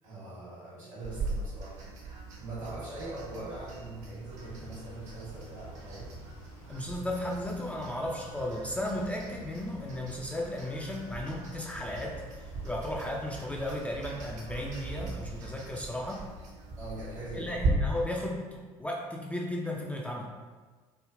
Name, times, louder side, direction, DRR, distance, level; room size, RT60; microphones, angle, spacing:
voice 1, 0.0-6.1 13.0-13.1 16.8-17.5, right 2 dB, 75° right, -8 dB, 1.4 m, -42 dB
sound 1, 1.0-17.7, right 3 dB, 45° right, 0.5 m, -40 dB
sound 2, 4.3-16.3, right 1 dB, 50° left, 0.8 m, -52 dB
voice 2, 6.7-12.2 12.6-16.2 17.3-20.3, left 1 dB, 10° left, -2 dB, 0.3 m, -35 dB
3.3 x 2.1 x 2.4 m, 1.4 s
figure-of-eight pair, 60°, 17 cm